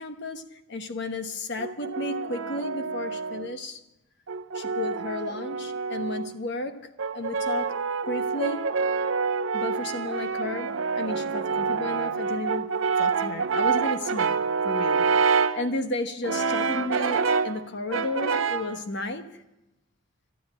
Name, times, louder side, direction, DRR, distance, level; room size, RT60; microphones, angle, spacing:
voice 1, 0.0-3.8 4.5-8.8 9.5-12.7 13.0-19.4, left 2 dB, 60° left, 1.2 m, -33 dB
Brass instrument, 1.6-3.5 4.3-6.3 7.0-15.7 16.2-17.6 17.9-18.8, right 5 dB, 75° right, 0.7 m, -27 dB
12.5 x 9.9 x 8.8 m
head